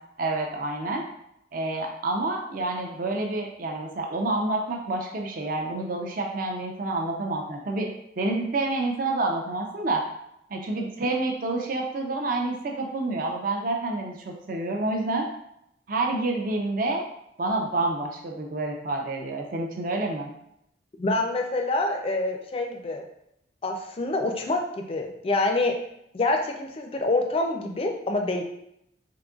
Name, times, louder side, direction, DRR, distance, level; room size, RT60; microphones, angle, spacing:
voice 1, 0.2-1.0 1.5-7.9 8.2-10.0 10.5-15.3 15.9-17.0 17.4-20.3, right 2 dB, 45° right, 1 dB, 0.5 m, -28 dB
voice 2, 21.0-23.0 23.6-25.8 26.1-28.4, left 2 dB, 30° left, 3 dB, 0.4 m, -26 dB
3.8 x 3.6 x 2.3 m, 0.78 s
head